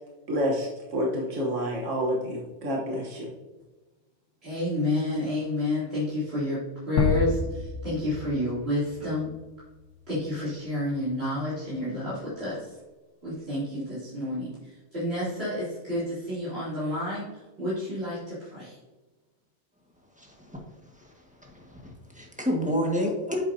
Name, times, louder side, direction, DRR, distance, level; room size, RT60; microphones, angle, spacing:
voice 1, 0.3-3.3, equal, 90° right, -2 dB, 1.5 m, -29 dB
voice 2, 4.4-6.6 6.9-9.3 10.1-12.7 13.2-14.5 14.9-17.2 17.6-18.8, left 1 dB, 60° right, -11 dB, 3.0 m, -29 dB
sound 1, 7.0-9.9, left 3 dB, 80° left, 1.3 m, -30 dB
voice 3, 20.2-20.6 20.9-21.1 21.4-23.4, equal, 5° right, -1 dB, 1.4 m, -30 dB
9.4 x 7.3 x 2.7 m, 1.2 s
omnidirectional pair, 1.2 m